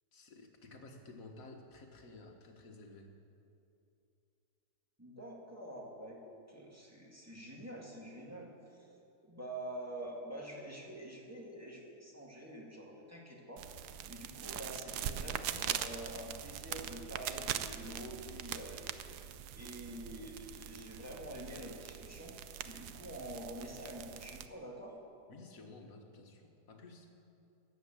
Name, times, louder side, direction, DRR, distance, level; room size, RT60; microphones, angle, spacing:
voice 1, 0.1-3.1 25.3-27.1, left 2 dB, 60° left, 3 dB, 1.7 m, -53 dB
voice 2, 5.0-8.9 9.2-13.7 14.1-18.9 19.5-22.3 22.6-25.0, right 1 dB, 10° right, -2 dB, 2.0 m, -47 dB
sound 1, 13.6-24.5, right 10 dB, 80° right, 1.2 m, -42 dB
13.5 x 9.3 x 7.4 m, 2.7 s
omnidirectional pair, 1.7 m